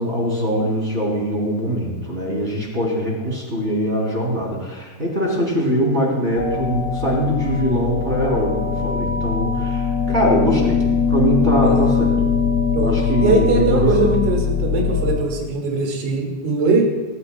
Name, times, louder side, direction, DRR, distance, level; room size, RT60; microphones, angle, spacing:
voice 1, 0.0-12.1 12.8-14.1, equal, 15° right, -3 dB, 2.7 m, -22 dB
sound 1, 6.3-15.2, left 6 dB, 5° left, 3.5 m, -21 dB
voice 2, 11.6-12.0 12.7-12.9 13.2-16.8, right 3 dB, 85° right, 1 dB, 4.6 m, -20 dB
25.5 x 14.0 x 2.3 m, 1.2 s
omnidirectional pair, 5.3 m